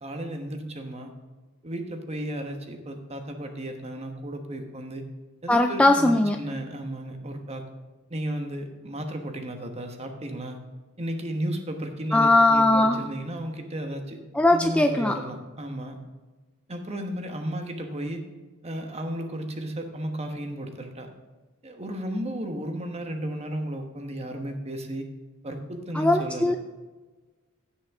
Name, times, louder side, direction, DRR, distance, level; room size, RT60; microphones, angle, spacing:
voice 1, 0.0-1.1 1.6-5.0 5.4-7.6 8.1-10.6 11.0-14.2 14.5-16.0 16.7-18.2 18.6-21.1 21.6-25.1 25.4-26.5, right 1 dB, 30° right, 5 dB, 1.2 m, -34 dB
voice 2, 5.5-6.4 12.1-13.0 14.3-15.2 25.9-26.5, left 2 dB, 5° left, 4 dB, 0.3 m, -19 dB
16.0 x 6.4 x 3.6 m, 1.3 s
head